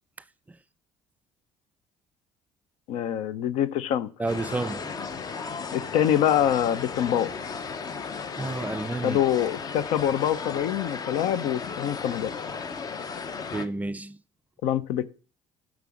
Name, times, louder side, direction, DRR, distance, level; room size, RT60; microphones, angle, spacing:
voice 1, 2.9-4.1 5.7-7.3 9.0-12.3 14.6-15.1, left 10 dB, 80° left, 0.6 m, -25 dB
voice 2, 4.2-4.9 8.3-9.2 13.5-14.2, right 2 dB, 15° right, 0.4 m, -30 dB
sound 1, 4.3-13.7, left 5 dB, 35° left, 0.7 m, -35 dB
6.9 x 6.2 x 6.2 m
cardioid pair, 110°, 11 cm